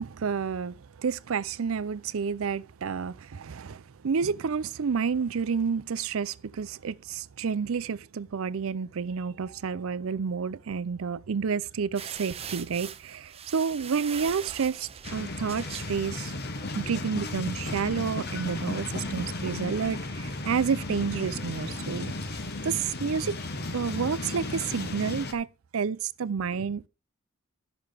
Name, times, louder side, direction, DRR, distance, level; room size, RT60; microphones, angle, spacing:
voice 1, 0.0-16.3 16.7-22.1 22.6-23.4 23.7-25.5 25.7-26.9, right 6 dB, 70° right, 0.5 m, -30 dB
sound 1, 12.0-16.6, right 7 dB, 30° right, 0.6 m, -42 dB
sound 2, 15.0-25.3, left 2 dB, 50° left, 1.3 m, -34 dB
12.5 x 6.1 x 5.0 m
head